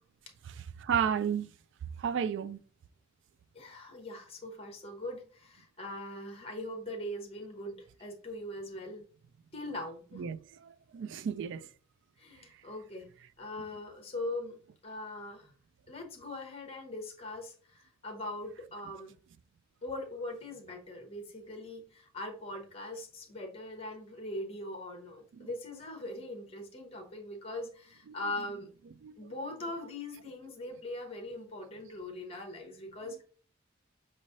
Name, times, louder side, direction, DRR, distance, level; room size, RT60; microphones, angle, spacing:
voice 1, 0.5-1.5 2.0-2.6 10.1-11.7 25.3-25.5 29.0-29.1, right 7 dB, 65° right, 0.3 m, -33 dB
voice 2, 3.5-9.0 9.5-10.2 12.2-13.1 13.4-14.5 14.8-15.5 15.9-19.1 19.8-28.7 29.2-33.2, left 1 dB, 30° left, 1.0 m, -41 dB
5.4 x 3.1 x 2.6 m
head